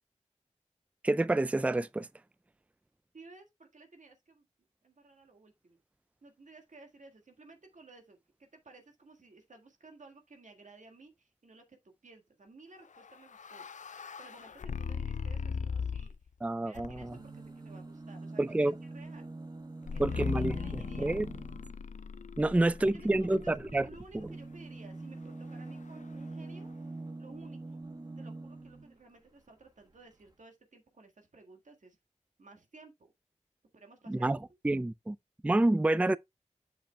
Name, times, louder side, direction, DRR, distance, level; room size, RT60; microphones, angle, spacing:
voice 1, 1.0-2.1 16.4-17.1 18.4-18.7 20.0-21.3 22.4-23.9 24.1-24.3 34.1-34.4 34.6-35.2 35.4-36.2, right 2 dB, 10° right, 0.3 m, -28 dB
voice 2, 3.1-4.5 4.8-5.8 6.2-16.1 16.5-19.3 19.9-21.2 22.4-26.7 27.2-32.0 32.4-33.1 33.7-34.3 34.7-34.8, right 3 dB, 85° right, 1.7 m, -55 dB
sound 1, 13.0-16.3 16.7-17.3 19.9-24.0, left 6 dB, 85° left, 0.4 m, -38 dB
sound 2, 17.0-21.8 23.5-29.0 29.9-30.0 30.2-30.3, right 2 dB, 35° right, 1.0 m, -45 dB
7.5 x 7.1 x 2.3 m
wide cardioid pair, 45°, 12 cm